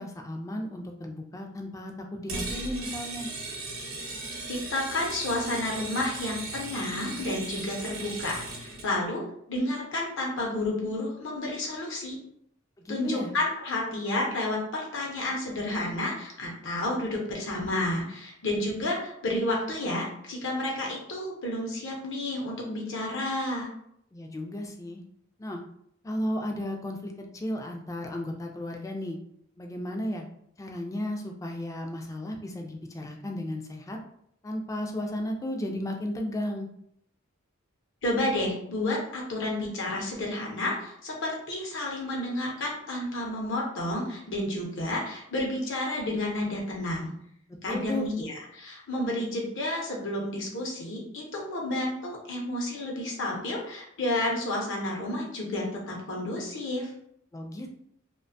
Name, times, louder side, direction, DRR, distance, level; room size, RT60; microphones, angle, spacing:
voice 1, 0.0-3.3 12.8-13.3 24.1-25.0 25.4-25.6 26.0-29.2 29.6-30.3 30.6-34.0 34.4-36.7 47.7-48.1 57.3-57.7, left 1 dB, 15° left, 2 dB, 0.3 m, -34 dB
sound 1, 2.3-8.9, right 2 dB, 70° right, 0.8 m, -37 dB
voice 2, 4.5-12.2 12.9-23.7 38.0-47.1 47.6-56.9, left 1 dB, 65° left, -1 dB, 0.6 m, -31 dB
2.4 x 2.2 x 2.5 m, 0.70 s
head